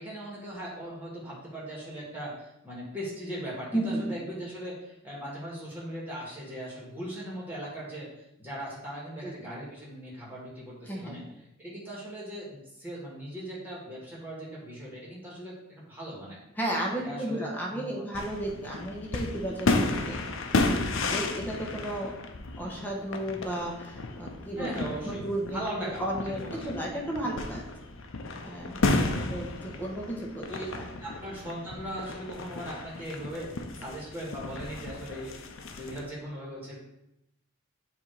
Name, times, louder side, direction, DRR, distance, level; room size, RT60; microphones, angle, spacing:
voice 1, 0.0-8.1 8.4-11.2 11.6-16.4 17.0-18.2 18.5-18.6 24.5-25.2 25.5-26.7 30.5-30.7 31.0-36.8, equal, 10° right, -5 dB, 1.7 m, -39 dB
voice 2, 3.7-4.2 9.2-9.3 10.9-11.2 16.6-20.2 21.1-22.1 22.6-27.6 28.4-28.8 29.1-30.5 30.8-30.9, right 1 dB, 10° left, -2 dB, 1.1 m, -33 dB
sound 1, 18.1-36.1, left 2 dB, 65° left, 0.6 m, -33 dB
7.5 x 2.8 x 4.6 m, 0.86 s
head